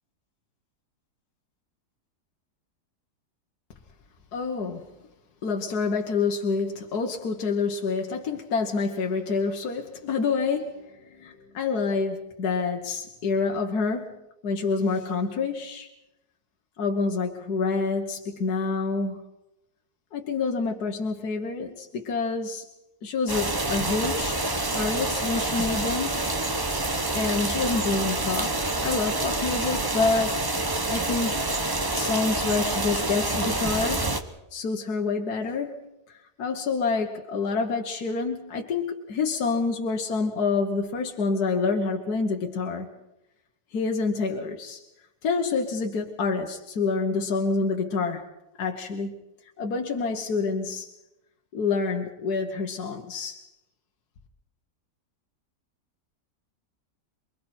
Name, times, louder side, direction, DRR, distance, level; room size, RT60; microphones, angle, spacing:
voice 1, 4.3-4.9 5.4-14.2 14.4-15.9 16.8-19.2 20.1-22.7 23.0-24.4 24.7-26.2 27.1-30.6 30.9-31.5 31.9-34.2 34.5-35.8 36.4-42.9 43.7-44.8 45.2-48.3 48.6-49.1 49.6-50.9 51.5-53.5, left 4 dB, 70° left, 2 dB, 1.8 m, -27 dB
sound 1, 23.3-34.2, right 2 dB, 20° right, 0.8 m, -27 dB
28.0 x 22.5 x 4.4 m, 0.91 s
omnidirectional pair, 1.8 m